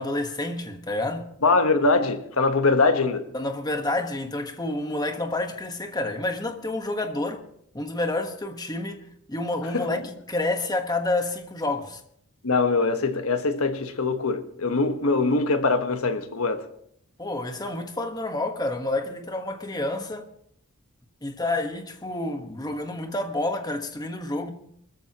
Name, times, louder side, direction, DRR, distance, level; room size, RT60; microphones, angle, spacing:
voice 1, 0.0-1.3 3.3-7.4 7.7-12.0 17.2-20.3 21.2-24.5, left 2 dB, 20° left, 1.3 m, -29 dB
voice 2, 1.4-3.2 9.7-10.0 12.4-16.6, left 3 dB, 85° left, 1.3 m, -23 dB
24.5 x 14.0 x 3.0 m
head